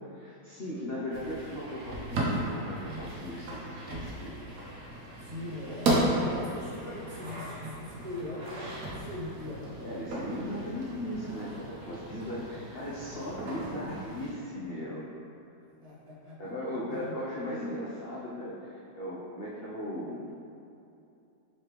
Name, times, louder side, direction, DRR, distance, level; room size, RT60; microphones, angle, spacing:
voice 1, 0.1-4.4 6.0-6.2 9.8-15.1 16.4-20.2, left 1 dB, 75° left, -7 dB, 0.5 m, -37 dB
sound 1, 1.1-14.3, right 1 dB, 65° right, 1.1 m, -35 dB
voice 2, 5.2-9.7 11.1-11.3 15.8-16.4 16.9-17.2, left 2 dB, 35° right, -9 dB, 0.4 m, -41 dB
4.1 x 3.3 x 3.0 m, 2.6 s
omnidirectional pair, 1.7 m